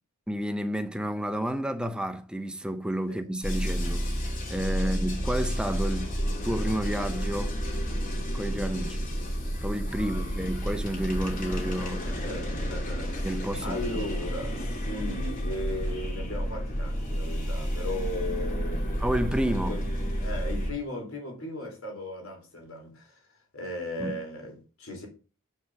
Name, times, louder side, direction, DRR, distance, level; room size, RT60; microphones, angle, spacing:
voice 1, 0.3-4.1 4.5-6.2 6.4-7.6 8.3-9.1 9.6-12.1 13.2-14.1 19.0-19.8 24.0-24.2, right 1 dB, 5° right, 0.7 m, -31 dB
sound 1, 3.4-20.7, equal, 40° left, 2.8 m, -30 dB
voice 2, 10.0-10.3 12.0-19.2 19.5-19.8 20.2-23.2 23.5-25.1, left 1 dB, 70° left, 3.9 m, -37 dB
7.4 x 6.0 x 6.5 m
head